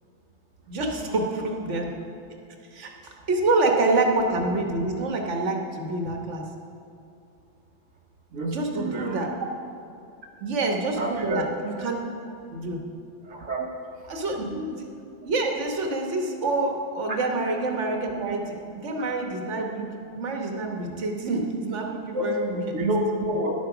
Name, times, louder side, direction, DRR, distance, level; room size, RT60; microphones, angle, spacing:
voice 1, 0.7-1.9 2.7-6.4 8.5-9.3 10.4-12.0 12.5-12.8 14.1-14.9 15.2-22.7, right 2 dB, 70° right, 2 dB, 1.6 m, -27 dB
voice 2, 8.3-9.3 11.0-11.4 13.2-13.7 14.4-14.5 17.1-17.2 19.0-19.1 22.1-22.3 22.7-23.5, right 1 dB, 90° right, -1 dB, 1.5 m, -29 dB
11.0 x 8.6 x 6.0 m, 2.6 s
omnidirectional pair, 1.3 m